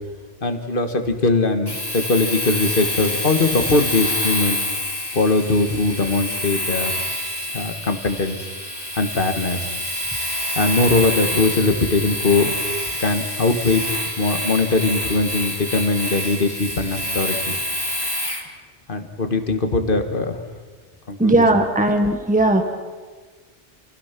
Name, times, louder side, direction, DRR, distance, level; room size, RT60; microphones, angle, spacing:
voice 1, 0.4-4.6 5.1-6.9 7.5-8.5 9.0-9.8 10.6-12.6 13.0-13.8 14.2-17.6 18.9-20.4 21.1-21.5 22.5-22.6, left 3 dB, 50° left, 7 dB, 1.8 m, -21 dB
Domestic sounds home sounds, 1.7-18.5, left 1 dB, 20° left, 2.5 m, -27 dB
voice 2, 21.2-22.6, right 1 dB, 5° right, 5 dB, 1.5 m, -17 dB
28.0 x 16.5 x 6.0 m, 1.4 s
omnidirectional pair, 1.1 m